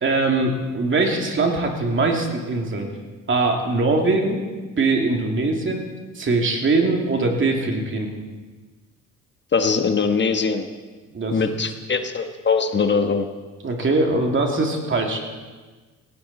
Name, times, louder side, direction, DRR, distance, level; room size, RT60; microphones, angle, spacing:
voice 1, 0.0-2.9 3.3-4.4 4.8-5.9 6.1-8.1 11.1-11.5 13.6-15.2, right 3 dB, 40° right, 2 dB, 2.9 m, -22 dB
voice 2, 9.5-10.7 11.3-13.3, left 5 dB, 35° left, 7 dB, 1.2 m, -21 dB
17.5 x 17.5 x 4.3 m, 1.3 s
cardioid pair, 90°, 30 cm